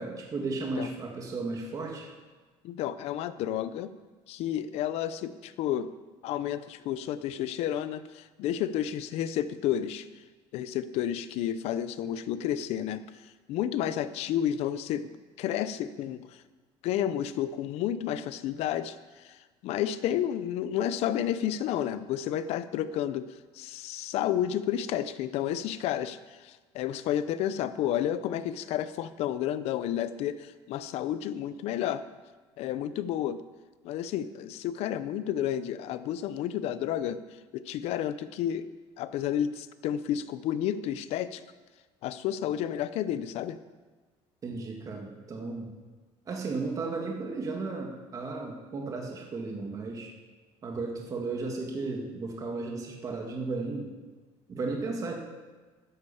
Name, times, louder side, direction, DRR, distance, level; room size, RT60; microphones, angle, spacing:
voice 1, 0.0-2.1 44.4-45.7 46.3-50.1 50.6-53.9 54.5-55.1, right 3 dB, 30° right, 0 dB, 2.0 m, -34 dB
voice 2, 2.6-3.9 4.3-5.9 6.2-10.1 10.5-16.4 16.8-32.0 32.6-33.4 33.8-37.2 37.5-38.7 39.0-41.4 42.0-43.6, left 10 dB, 65° left, 13 dB, 0.7 m, -31 dB
12.0 x 10.5 x 7.1 m, 1.3 s
cardioid pair, 150°, 12 cm